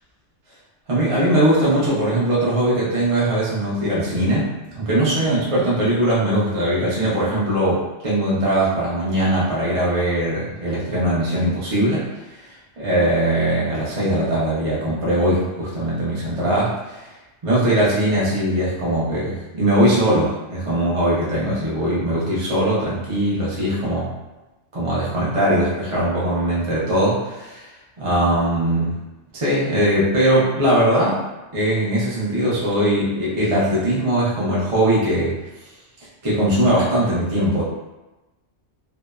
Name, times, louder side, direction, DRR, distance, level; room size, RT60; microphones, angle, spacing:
voice 1, 0.9-17.1 17.4-24.1 24.7-27.7 28.0-29.0 29.3-31.2 31.5-35.3 36.2-37.6, right 1 dB, 40° right, -8 dB, 0.5 m, -20 dB
2.7 x 2.0 x 2.2 m, 1.1 s
omnidirectional pair, 1.3 m